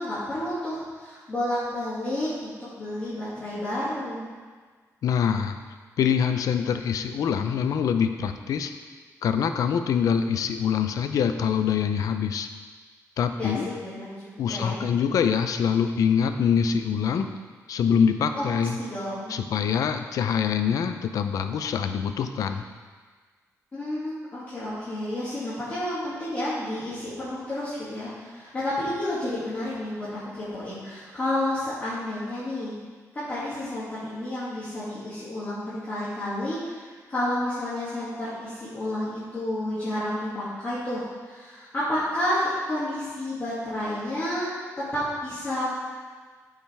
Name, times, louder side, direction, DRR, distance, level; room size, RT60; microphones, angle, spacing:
voice 1, 0.0-4.3 13.4-14.8 18.3-19.4 23.7-32.8 33.1-44.5 44.9-45.6, left 1 dB, 25° left, -12 dB, 2.3 m, -30 dB
voice 2, 5.0-5.6 6.0-8.7 9.2-12.5 13.2-13.7 14.4-17.3 17.7-18.8 19.3-22.6, left 7 dB, 70° left, 8 dB, 0.6 m, -24 dB
13.5 x 5.6 x 3.5 m, 1.5 s
wide cardioid pair, 175°, 6 cm